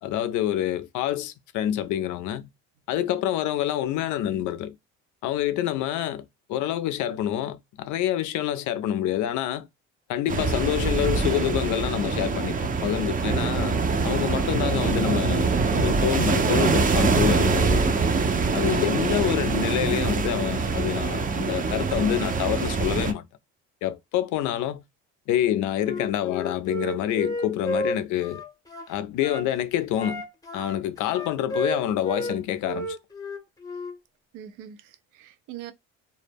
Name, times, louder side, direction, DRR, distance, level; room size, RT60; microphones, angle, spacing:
voice 1, 0.0-2.5 2.9-4.8 5.2-9.7 10.1-18.0 18.5-23.2 23.8-24.8 25.3-28.4 28.9-30.2 30.5-33.0, left 11 dB, 65° left, 0.5 m, -27 dB
sound 1, 10.3-23.1, right 4 dB, 25° right, 0.5 m, -24 dB
Wind instrument woodwind instrument, 25.8-29.5 29.9-32.4 32.6-34.0, left 1 dB, 10° left, 0.7 m, -32 dB
voice 2, 34.3-35.7, right 11 dB, 70° right, 0.5 m, -42 dB
2.1 x 2.0 x 3.3 m
supercardioid pair, 85°, 32 cm